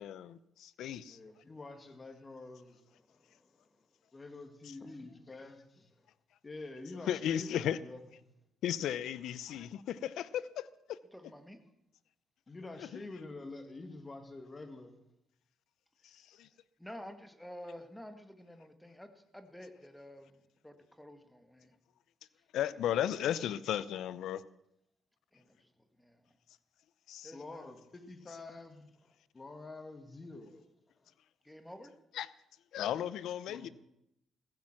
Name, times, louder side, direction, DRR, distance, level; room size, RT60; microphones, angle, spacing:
voice 1, 0.0-1.2 7.1-7.8 8.6-11.0 12.8-13.0 16.0-16.5 22.5-24.4 27.1-27.3 32.1-32.3 32.7-33.7, left 10 dB, 80° left, 0.7 m, -35 dB
voice 2, 1.1-3.5 4.1-6.1 6.4-7.5 7.8-8.0 12.5-15.0 27.3-30.6 31.0-31.1 33.5-33.7, left 2 dB, 30° left, 2.5 m, -48 dB
voice 3, 11.1-11.6 16.8-19.1 19.3-21.8 25.3-26.3 27.2-27.7 31.4-32.0, equal, 5° left, 1.9 m, -50 dB
15.5 x 15.0 x 5.9 m
cardioid pair, 90°, 0 cm